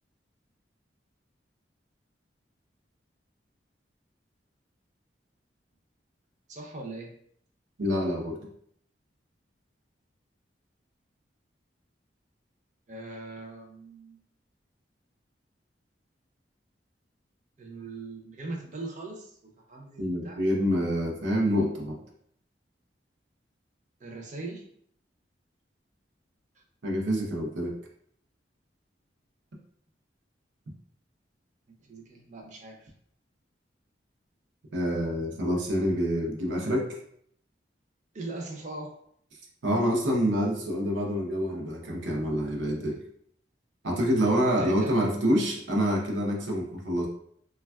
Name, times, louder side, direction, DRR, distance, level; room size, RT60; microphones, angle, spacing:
voice 1, 6.5-7.1 12.9-14.2 17.6-20.4 24.0-24.6 26.5-26.6 31.8-32.9 38.1-39.0 44.6-45.1, right 2 dB, 40° right, 1 dB, 0.5 m, -40 dB
voice 2, 7.8-8.4 20.0-22.0 26.8-27.8 34.7-37.0 39.6-43.0 43.8-47.1, equal, 90° right, 0 dB, 0.6 m, -27 dB
3.3 x 2.3 x 2.2 m, 0.66 s
head